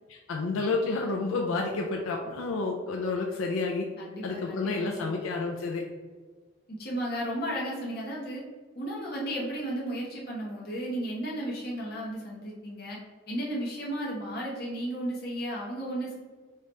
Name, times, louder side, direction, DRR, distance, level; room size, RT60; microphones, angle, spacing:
voice 1, 0.1-3.9 4.2-5.8, left 3 dB, 85° left, 1 dB, 0.5 m, -30 dB
voice 2, 4.0-5.2 6.7-8.4 8.7-13.0 13.3-16.1, right 1 dB, 50° left, -4 dB, 1.2 m, -34 dB
4.9 x 2.8 x 3.2 m, 1.4 s
head